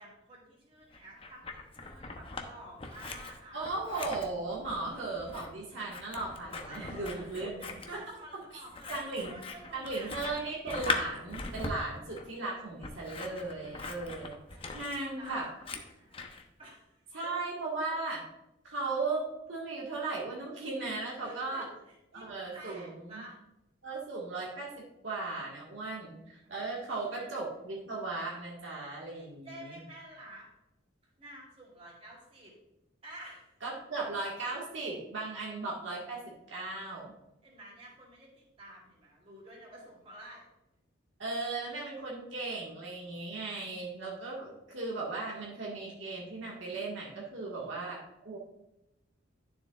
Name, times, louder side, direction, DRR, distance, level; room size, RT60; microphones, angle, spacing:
voice 1, 0.0-3.7 6.6-10.2 14.4-14.8 15.1-16.3 16.6-17.4 21.2-22.3 22.5-23.4 26.9-27.3 29.2-30.5 31.2-32.5 33.0-33.5 37.4-40.5 47.4-47.9, right 1 dB, 30° right, -4 dB, 2.9 m, -51 dB
Scissors, 0.9-2.5 2.8-16.4, left 3 dB, 25° left, 0.7 m, -41 dB
voice 2, 3.5-8.2 8.9-9.3 9.7-15.5 17.1-18.2 18.6-21.7 22.1-23.2 23.8-29.8 33.6-36.2 36.5-37.1 41.2-48.4, right 3 dB, 65° right, -5 dB, 1.7 m, -37 dB
11.5 x 7.0 x 2.4 m, 0.90 s
head